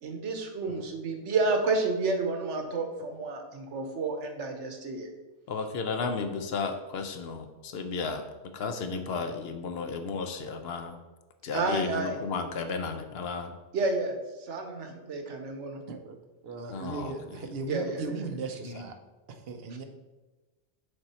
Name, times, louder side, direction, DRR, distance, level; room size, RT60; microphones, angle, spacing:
voice 1, 0.0-5.1 11.5-12.2 13.7-15.8 17.7-18.1, right 3 dB, 85° right, 5 dB, 1.2 m, -30 dB
voice 2, 5.5-8.3 8.5-11.0 11.4-13.5 16.7-17.4 18.6-18.8, left 4 dB, 65° left, 7 dB, 0.8 m, -34 dB
voice 3, 15.9-16.2 16.4-19.0 19.3-19.9, right 4 dB, 60° right, 6 dB, 0.8 m, -37 dB
6.6 x 4.4 x 4.2 m, 1.2 s
omnidirectional pair, 1.2 m